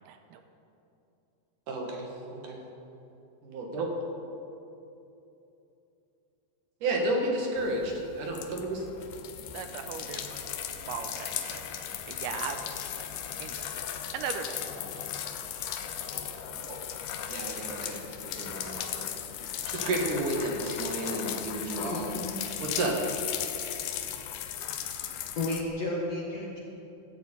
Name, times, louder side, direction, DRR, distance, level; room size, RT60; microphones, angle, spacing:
voice 1, 0.1-0.4 9.5-10.4 10.8-12.6 13.0-13.1 13.4-13.7 14.1-14.6, right 7 dB, 85° right, 7 dB, 2.6 m, -38 dB
voice 2, 1.7-2.6 3.4-3.9 6.8-8.8 16.7-16.8 17.3-19.2 19.7-22.2 22.6-23.0, right 2 dB, 60° right, 0 dB, 2.8 m, -32 dB
sound 1, 7.6-25.6, left 9 dB, 75° left, 1.9 m, -37 dB
voice 3, 21.8-22.4 25.4-26.6, left 2 dB, 60° left, -3 dB, 1.8 m, -33 dB
16.5 x 13.0 x 4.5 m, 2.8 s
omnidirectional pair, 4.7 m